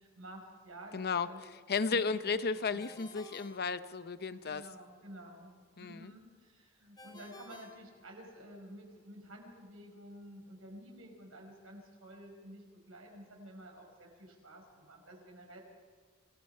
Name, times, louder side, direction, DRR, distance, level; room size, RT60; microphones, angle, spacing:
voice 1, 0.0-1.4 1.9-2.4 2.7-2.8 4.4-15.6, right 1 dB, 75° right, 1 dB, 4.9 m, -51 dB
voice 2, 0.9-1.3 1.7-4.7 5.8-6.0, left 5 dB, 50° left, 13 dB, 0.7 m, -33 dB
Ringtone, 2.8-4.5 7.0-8.6, left 2 dB, 20° left, 2.7 m, -55 dB
27.5 x 18.5 x 5.6 m, 1.5 s
head